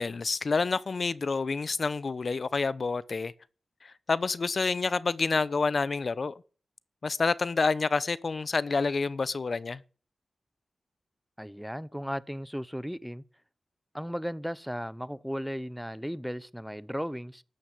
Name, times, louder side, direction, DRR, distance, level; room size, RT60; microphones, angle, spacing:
voice 1, 0.0-3.3 3.8-6.3 7.0-9.8, left 4 dB, 55° left, 0.8 m, -28 dB
voice 2, 11.4-13.2 13.9-17.4, equal, ahead, 0.8 m, -35 dB
13.5 x 9.4 x 9.3 m
cardioid pair, 70°, 0 cm